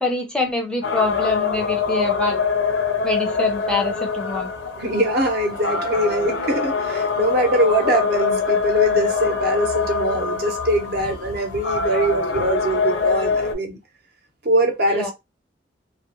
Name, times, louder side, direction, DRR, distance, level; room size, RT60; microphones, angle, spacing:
voice 1, 0.0-2.5 3.0-4.5 14.9-15.1, left 2 dB, 5° left, 0.5 m, -25 dB
sound 1, 0.8-13.6, left 5 dB, 90° left, 0.6 m, -24 dB
voice 2, 4.8-13.8 14.4-15.1, right 1 dB, 60° right, 0.8 m, -22 dB
2.4 x 2.1 x 2.9 m
head